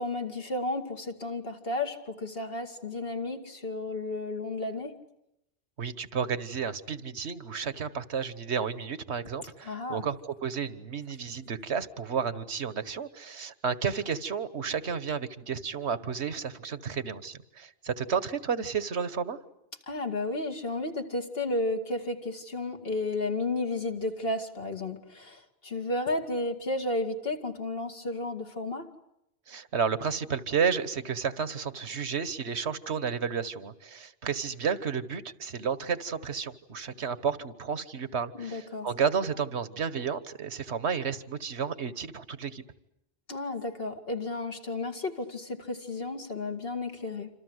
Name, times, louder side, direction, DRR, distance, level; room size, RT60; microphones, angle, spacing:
voice 1, 0.0-5.0 9.6-10.0 19.9-28.9 38.4-38.9 43.3-47.3, left 2 dB, 55° left, 5 dB, 2.5 m, -33 dB
voice 2, 5.8-19.4 29.5-42.6, right 6 dB, 75° right, 14 dB, 1.6 m, -32 dB
27.5 x 27.0 x 8.0 m, 0.82 s
omnidirectional pair, 1.2 m